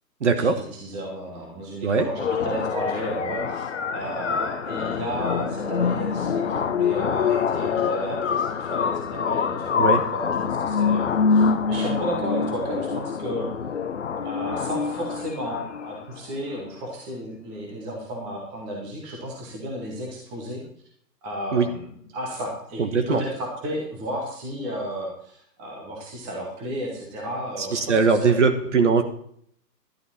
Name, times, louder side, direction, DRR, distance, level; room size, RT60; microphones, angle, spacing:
voice 1, 0.2-0.6 1.8-2.1 9.8-10.0 21.5-21.7 22.8-23.2 27.6-29.0, right 4 dB, 45° right, 8 dB, 1.3 m, -21 dB
voice 2, 0.7-13.5 14.2-20.6 21.2-21.8 22.1-28.3, equal, 10° right, -1 dB, 1.1 m, -33 dB
sound 1, 2.2-16.2, left 6 dB, 45° left, 0.8 m, -25 dB
11.5 x 10.0 x 4.2 m, 0.64 s
hypercardioid pair, 160°, 50 cm